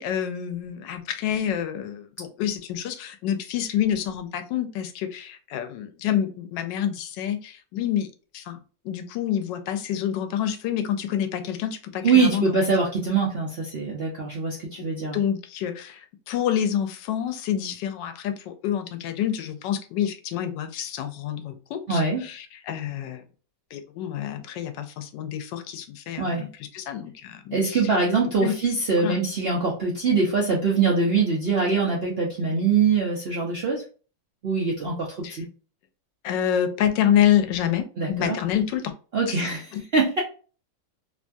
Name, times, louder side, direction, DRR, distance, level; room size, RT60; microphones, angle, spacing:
voice 1, 0.0-8.1 8.3-8.6 8.8-12.4 14.8-23.2 23.7-26.5 26.7-28.0 28.4-28.5 29.0-29.2 35.2-35.4 36.2-38.9 39.3-39.4 39.7-39.8, left 10 dB, 85° left, 8 dB, 1.3 m, -27 dB
voice 2, 12.0-15.2 21.9-22.2 26.2-26.5 27.5-33.8 34.4-35.4 38.0-38.4 39.1-40.2, right 4 dB, 65° right, -3 dB, 0.6 m, -23 dB
3.1 x 2.2 x 2.5 m, 0.37 s
omnidirectional pair, 1.9 m